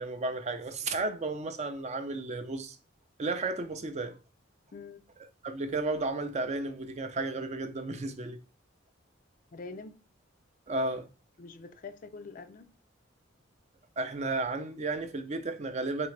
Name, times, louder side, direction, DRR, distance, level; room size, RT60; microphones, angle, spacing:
voice 1, 0.0-2.8 3.2-4.2 5.4-8.4 10.7-11.1 14.0-16.1, right 2 dB, 35° right, 0.4 m, -33 dB
voice 2, 4.7-5.1 9.5-10.0 11.4-12.7, left 4 dB, 40° left, 0.4 m, -45 dB
3.7 x 3.5 x 3.2 m
head